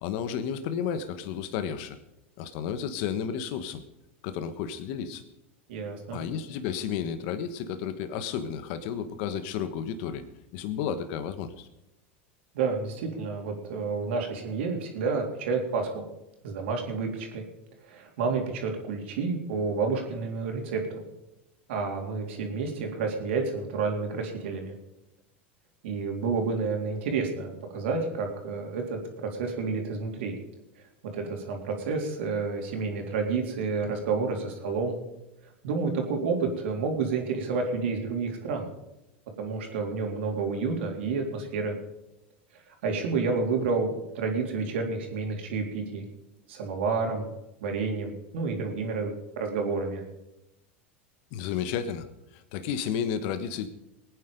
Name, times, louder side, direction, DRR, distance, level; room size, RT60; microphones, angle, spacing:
voice 1, 0.0-2.0 2.4-3.8 4.2-5.2 6.1-10.2 10.5-11.7 51.3-52.1 52.3-53.7, left 8 dB, 60° left, 11 dB, 1.3 m, -32 dB
voice 2, 5.7-6.2 12.5-16.0 16.4-17.4 17.8-21.0 21.7-24.7 25.8-30.3 31.1-35.0 35.6-38.7 39.4-41.7 42.8-46.0 46.5-47.3 47.6-50.0, right 4 dB, 75° right, 2 dB, 3.7 m, -30 dB
21.0 x 9.4 x 5.2 m, 0.92 s
hypercardioid pair, 100°, 6 cm